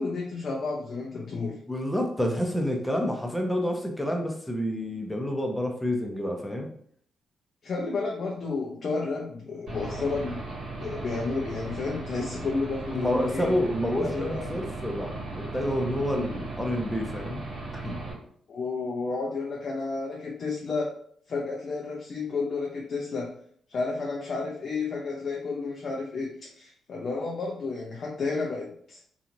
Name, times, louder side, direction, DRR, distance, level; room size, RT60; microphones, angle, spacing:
voice 1, 0.0-1.6 7.6-10.4 10.8-13.5 14.0-14.6 18.5-20.9 21.3-23.3 23.7-29.0, left 3 dB, 55° left, -2 dB, 0.5 m, -31 dB
voice 2, 1.7-6.7 12.9-17.4 17.7-18.0, equal, 5° left, 2 dB, 0.8 m, -28 dB
Aircraft / Engine, 9.7-18.1, right 3 dB, 60° right, 1.4 m, -37 dB
2.8 x 2.4 x 2.6 m, 0.62 s
hypercardioid pair, 45°, 0 cm